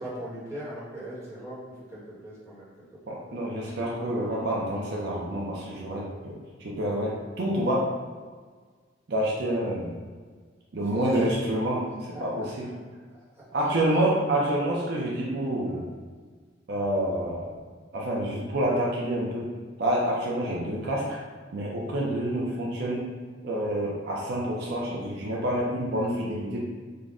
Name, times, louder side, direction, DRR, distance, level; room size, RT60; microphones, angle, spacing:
voice 1, 0.0-3.5 10.8-11.0 12.1-12.7 13.4-14.0 21.9-22.1, equal, 15° right, -8 dB, 1.1 m, -41 dB
voice 2, 3.1-7.9 9.1-9.9 10.7-11.9 12.2-12.7 13.5-15.9 16.7-17.5 17.9-19.5 19.8-21.2 21.5-23.1 23.4-26.6, right 1 dB, 60° right, -4 dB, 0.5 m, -28 dB
3.8 x 2.2 x 3.5 m, 1.5 s
head